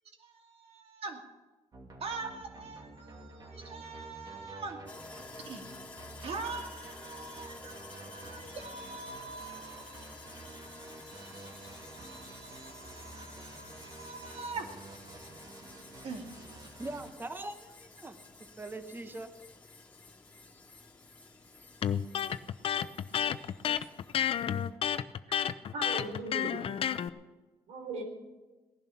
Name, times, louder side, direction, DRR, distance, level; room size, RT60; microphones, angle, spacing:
voice 1, 0.2-1.2 2.0-4.8 5.4-5.7 6.2-14.7 16.0-16.3, right 4 dB, 60° right, 4 dB, 2.5 m, -44 dB
sound 1, 1.7-17.1, right 2 dB, 35° right, 2.6 m, -50 dB
Sawing, 4.9-24.8, left 3 dB, 15° left, 2.8 m, -52 dB
voice 2, 16.8-19.3, right 2 dB, 20° right, 10 dB, 1.0 m, -42 dB
Electric guitar, 21.8-27.1, left 9 dB, 55° left, 0.6 m, -31 dB
voice 3, 25.7-26.7 27.7-28.0, right 2 dB, 80° right, 2 dB, 4.1 m, -38 dB
17.5 x 11.0 x 5.8 m, 1.2 s
cardioid pair, 105°, 11 cm